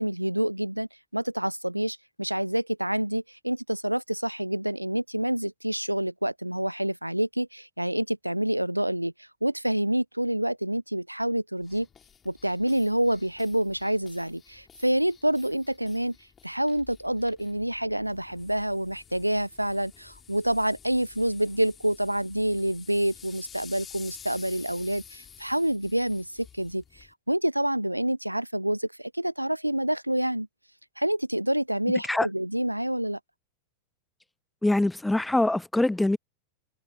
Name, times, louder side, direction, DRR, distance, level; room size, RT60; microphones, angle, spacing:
voice 1, 0.0-9.1 9.4-11.9 12.2-16.2 16.4-30.5 31.0-33.2, right 1 dB, 90° right, 0.5 m, -27 dB
sound 1, 11.6-27.1, left 8 dB, 20° left, 3.5 m, -51 dB
voice 2, 34.6-36.2, left 2 dB, 5° left, 0.3 m, -23 dB
figure-of-eight pair, 90°, 0 cm